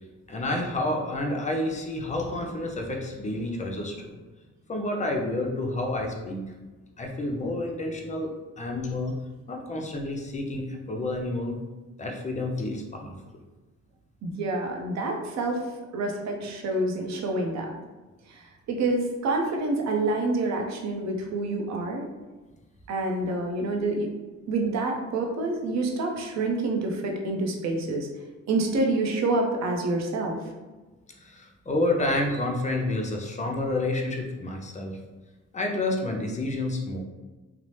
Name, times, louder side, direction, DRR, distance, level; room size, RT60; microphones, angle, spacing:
voice 1, 0.3-4.2 4.7-6.6 7.0-8.3 8.6-9.1 9.5-11.6 12.0-13.2 31.2-35.0 35.5-37.0, left 2 dB, 25° left, 1 dB, 0.5 m, -29 dB
voice 2, 14.2-15.6 15.9-17.7 18.3-18.4 18.7-22.0 22.9-24.1 24.5-28.1 28.5-30.4, right 2 dB, 65° right, 2 dB, 0.6 m, -27 dB
2.8 x 2.0 x 3.1 m, 1.2 s
cardioid pair, 90°, 30 cm